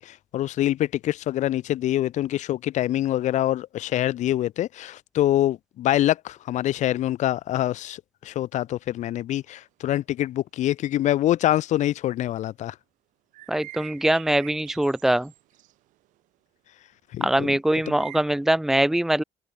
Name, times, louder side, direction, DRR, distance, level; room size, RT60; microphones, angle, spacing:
voice 1, 0.0-12.7 17.1-17.5 17.9-18.0, left 13 dB, 70° left, 1.2 m, -25 dB
sound 1, 13.3-15.7 16.0-16.1 17.7-18.2, right 17 dB, 80° right, 2.2 m, -45 dB
voice 2, 13.5-15.3 17.2-19.2, right 1 dB, 5° right, 0.6 m, -22 dB
open air
cardioid pair, 85°, 13 cm